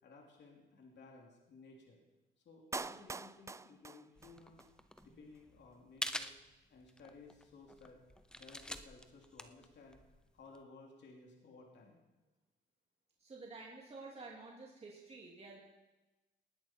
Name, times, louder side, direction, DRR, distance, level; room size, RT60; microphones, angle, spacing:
voice 1, 0.0-2.0 2.4-4.6 5.0-6.3 6.7-8.0 8.3-10.0 10.3-12.0, left 3 dB, 60° left, 0 dB, 3.1 m, -57 dB
Clapping, 2.7-4.7 5.0-5.1, right 4 dB, 15° right, 0.3 m, -44 dB
sound 1, 4.2-10.6, left 1 dB, 5° left, 0.8 m, -47 dB
voice 2, 13.2-15.6, right 3 dB, 30° right, -2 dB, 2.7 m, -51 dB
19.0 x 10.5 x 4.5 m, 1.1 s
cardioid pair, 90°, 20 cm